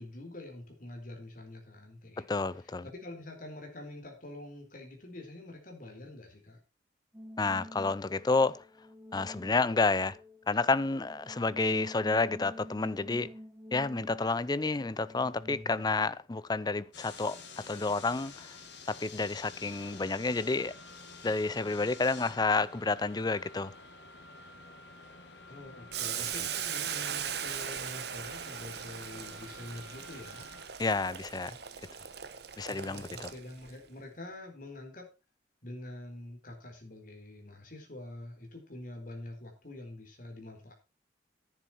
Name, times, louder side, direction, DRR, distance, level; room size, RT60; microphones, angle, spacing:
voice 1, 0.0-2.3 2.8-6.6 25.5-30.5 32.7-35.1 35.6-40.7, left 1 dB, 50° left, 4.1 m, -46 dB
voice 2, 2.2-2.9 7.4-8.6 9.1-10.2 10.5-13.3 13.7-18.5 18.9-20.8 21.2-23.7 26.2-26.3 30.8-31.6 32.6-33.3, left 3 dB, 20° left, 0.5 m, -30 dB
sound 1, 7.1-15.9, left 1 dB, 10° right, 2.8 m, -48 dB
sound 2, 16.9-30.7, left 3 dB, 70° left, 2.3 m, -50 dB
Boiling, 25.9-33.7, right 9 dB, 65° right, 1.1 m, -39 dB
11.0 x 10.0 x 4.4 m
head